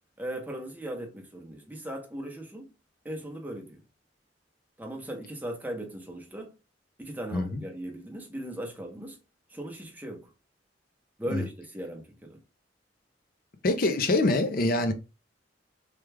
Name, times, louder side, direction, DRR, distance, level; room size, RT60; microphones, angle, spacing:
voice 1, 0.2-2.7 3.0-3.8 4.8-6.5 7.0-9.2 9.5-10.3 11.2-12.4, right 1 dB, 10° right, 0.8 m, -38 dB
voice 2, 13.6-14.9, left 2 dB, 50° left, 0.6 m, -25 dB
3.3 x 2.4 x 3.2 m
head